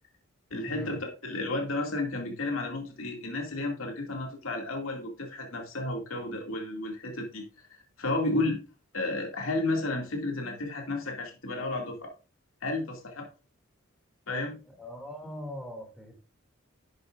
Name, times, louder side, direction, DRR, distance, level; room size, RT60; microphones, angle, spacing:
voice 1, 0.5-7.4 7.7-8.6 8.9-12.1 12.6-13.3 14.3-14.6, left 2 dB, 80° left, 1 dB, 2.4 m, -32 dB
voice 2, 14.8-16.1, equal, ahead, 1 dB, 2.6 m, -41 dB
11.5 x 8.2 x 2.5 m, 0.33 s
head